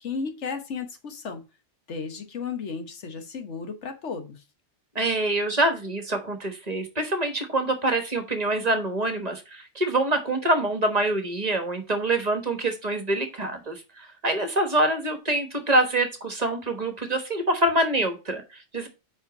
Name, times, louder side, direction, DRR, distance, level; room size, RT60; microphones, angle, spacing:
voice 1, 0.0-1.4 1.9-4.4, left 5 dB, 80° left, 7 dB, 1.5 m, -34 dB
voice 2, 4.9-18.9, right 1 dB, 35° right, 6 dB, 1.3 m, -25 dB
5.4 x 5.0 x 5.1 m, 0.28 s
omnidirectional pair, 1.2 m